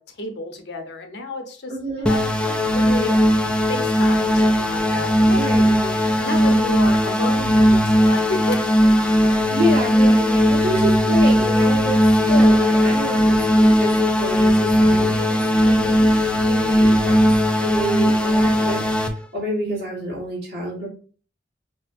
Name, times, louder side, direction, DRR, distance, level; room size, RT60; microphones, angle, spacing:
voice 1, 0.0-1.7 2.0-3.2 3.7-6.0 6.2-8.7 9.0-9.5, left 2 dB, 65° left, 4 dB, 0.8 m, -31 dB
voice 2, 1.7-2.1 5.4-5.8 6.2-6.6 9.2-12.0 12.3-17.2 17.6-20.9, equal, 65° right, -7 dB, 1.5 m, -28 dB
sound 1, 2.1-19.1, equal, 5° left, 0.3 m, -18 dB
5.5 x 2.1 x 2.5 m, 0.41 s
head